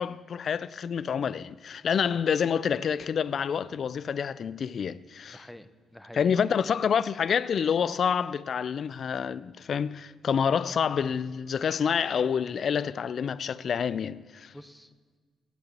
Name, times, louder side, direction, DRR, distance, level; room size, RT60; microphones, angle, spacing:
voice 1, 0.0-5.5 6.1-14.5, left 7 dB, 55° left, 0.3 m, -28 dB
voice 2, 5.3-6.4 14.5-15.2, equal, 5° left, 0.6 m, -48 dB
8.7 x 7.7 x 7.8 m
cardioid pair, 95°, 0 cm